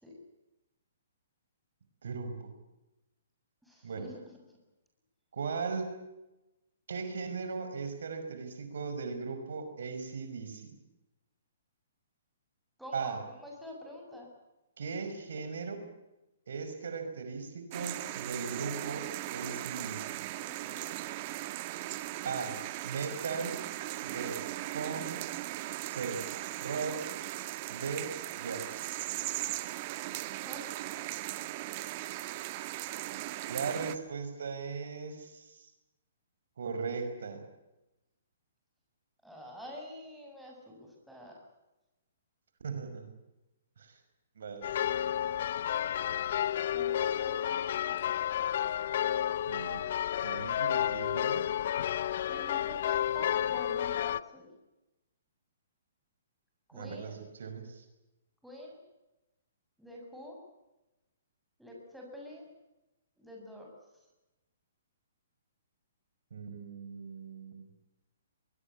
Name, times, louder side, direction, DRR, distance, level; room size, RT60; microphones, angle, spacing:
voice 1, 2.0-2.5 3.8-4.1 5.3-5.9 6.9-10.7 12.9-13.2 14.8-15.8 16.5-20.2 22.2-23.6 24.0-24.4 24.7-25.4 25.8-26.3 26.6-27.2 27.7-29.1 33.4-35.7 36.6-37.4 42.6-43.1 43.8-44.0 44.4-44.9 49.5-49.8 50.2-51.5 56.7-57.9 66.3-67.7, right 5 dB, 75° right, 7 dB, 5.6 m, -38 dB
voice 2, 3.6-4.2 12.8-14.3 20.3-20.8 30.4-30.6 39.2-41.4 46.4-48.1 52.3-54.5 56.7-57.1 58.4-58.8 59.8-60.4 61.6-62.5 63.2-63.7, left 1 dB, ahead, -1 dB, 7.6 m, -47 dB
sound 1, 17.7-34.0, right 16 dB, 35° right, 1.5 m, -38 dB
sound 2, 44.6-54.2, left 10 dB, 55° left, 0.7 m, -31 dB
23.0 x 22.0 x 8.6 m, 1.0 s
hypercardioid pair, 145°, 0 cm